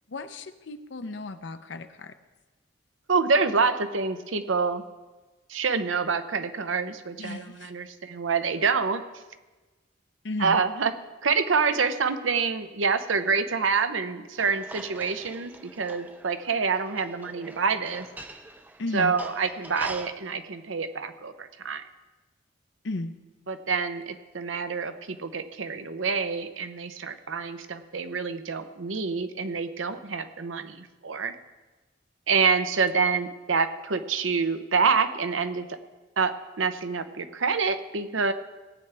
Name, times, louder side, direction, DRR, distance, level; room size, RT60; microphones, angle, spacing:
voice 1, 0.1-2.2 7.2-7.7 10.2-10.6 18.8-19.1 22.8-23.1, left 2 dB, 65° left, 9 dB, 0.6 m, -34 dB
voice 2, 3.1-4.8 5.5-9.0 10.4-10.9 11.2-18.1 18.9-21.8 23.5-31.3 32.3-35.8 36.2-38.3, right 5 dB, 85° right, 10 dB, 0.8 m, -27 dB
sound 1, 14.4-20.1, right 1 dB, 10° right, 0.5 m, -44 dB
18.5 x 8.8 x 3.4 m, 1.2 s
head